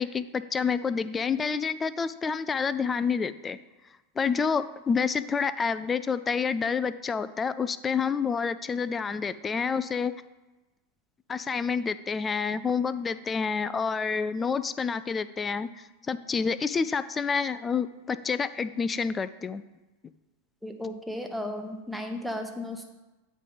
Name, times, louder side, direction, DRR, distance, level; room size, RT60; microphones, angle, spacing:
voice 1, 0.0-3.6 4.2-10.1 11.3-19.6, left 5 dB, 20° left, 14 dB, 0.3 m, -28 dB
voice 2, 20.6-22.9, left 1 dB, ahead, 3 dB, 0.9 m, -34 dB
8.5 x 3.3 x 5.3 m, 1.1 s
figure-of-eight pair, 90°, 0 cm